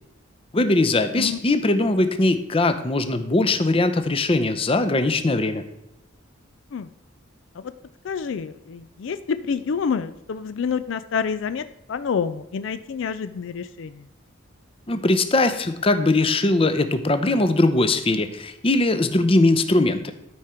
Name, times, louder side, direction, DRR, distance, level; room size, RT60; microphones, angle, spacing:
voice 1, 0.5-5.6 14.9-20.1, left 2 dB, 25° left, 9 dB, 0.6 m, -20 dB
voice 2, 8.0-14.1, left 6 dB, 70° left, 12 dB, 0.4 m, -28 dB
12.5 x 5.0 x 4.3 m, 0.87 s
head